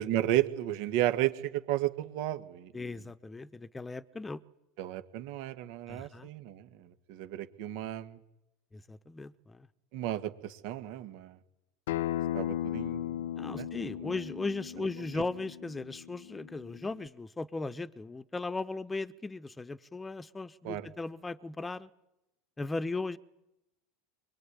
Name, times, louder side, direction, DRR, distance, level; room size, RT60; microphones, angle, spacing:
voice 1, 0.0-2.9 4.8-8.2 9.9-11.4 12.3-13.2 13.6-13.7 14.0-14.1 20.6-20.9, right 13 dB, 65° right, 1.8 m, -33 dB
voice 2, 2.7-4.4 5.9-6.3 8.7-9.7 13.4-21.9 22.6-23.2, left 3 dB, 15° left, 1.0 m, -37 dB
Acoustic guitar, 11.9-17.1, left 11 dB, 75° left, 1.0 m, -36 dB
24.0 x 22.0 x 9.9 m
hypercardioid pair, 90°, 0 cm